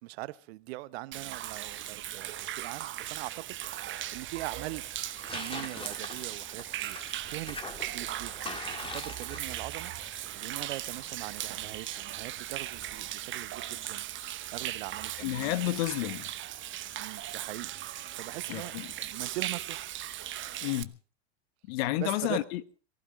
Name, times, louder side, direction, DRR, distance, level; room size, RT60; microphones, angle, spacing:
voice 1, 0.0-4.8 5.3-7.0 7.3-14.1 14.5-15.5 17.0-19.9 22.0-22.4, right 19 dB, 60° right, 1.1 m, -42 dB
Human voice / Rain / Stream, 1.1-20.8, right 13 dB, 35° right, 1.1 m, -38 dB
Tearing, 1.8-14.0, left 3 dB, 15° left, 2.5 m, -46 dB
voice 2, 15.2-16.3 18.5-18.9 20.6-20.9 21.7-22.6, left 16 dB, 60° left, 1.4 m, -30 dB
23.0 x 15.5 x 3.8 m
hypercardioid pair, 95°, 36 cm